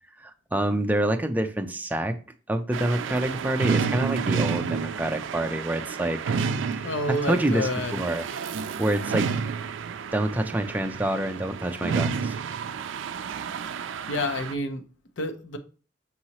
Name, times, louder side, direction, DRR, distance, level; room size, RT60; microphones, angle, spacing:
voice 1, 0.2-2.1 2.5-6.4 6.6-8.3 8.8-9.3 10.1-12.4, right 1 dB, 10° right, 6 dB, 0.4 m, -27 dB
sound 1, 2.7-14.5, right 6 dB, 80° right, 0.3 m, -30 dB
voice 2, 6.8-7.9 14.1-14.8 15.2-15.6, left 1 dB, 90° left, 8 dB, 0.7 m, -28 dB
5.5 x 2.9 x 2.9 m, 0.37 s
head